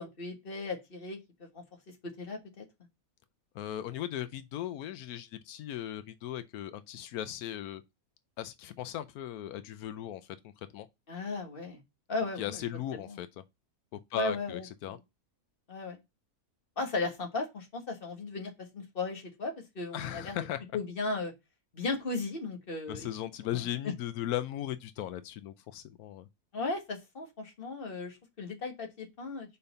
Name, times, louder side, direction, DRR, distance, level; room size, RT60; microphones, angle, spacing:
voice 1, 0.0-1.6 2.2-2.6 11.1-11.8 12.1-12.6 13.0-13.2 14.1-14.6 15.7-16.0 16.8-20.4 20.7-21.3 21.7-23.1 23.8-23.9 26.5-29.6, left 3 dB, 40° left, 1.6 m, -36 dB
voice 2, 3.5-7.8 8.4-10.4 10.7-10.9 12.4-13.3 13.9-15.0 19.9-20.6 22.9-26.3, left 12 dB, 90° left, 1.1 m, -37 dB
5.2 x 4.4 x 5.3 m
omnidirectional pair, 1.6 m